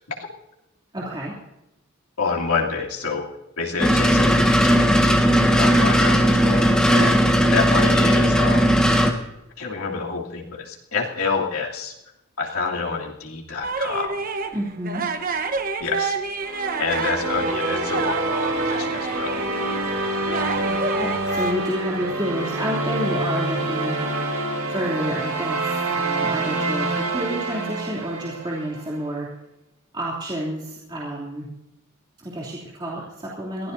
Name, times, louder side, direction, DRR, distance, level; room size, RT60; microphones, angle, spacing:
voice 1, 0.9-1.3 14.5-15.1 20.7-24.0 24.7-29.3 29.9-31.5 32.2-33.7, equal, 20° right, -5 dB, 2.9 m, -29 dB
voice 2, 2.2-3.3 3.6-5.3 5.6-8.7 9.6-11.9 12.4-14.2 15.8-16.2 16.8-19.4, left 5 dB, 85° left, -1 dB, 2.9 m, -28 dB
sound 1, 3.8-9.1, equal, 5° left, 1.6 m, -17 dB
sound 2, 13.6-21.5, right 4 dB, 40° right, 1.1 m, -29 dB
sound 3, 16.4-28.8, right 2 dB, 80° right, 4.2 m, -26 dB
22.5 x 16.0 x 2.7 m, 0.89 s
head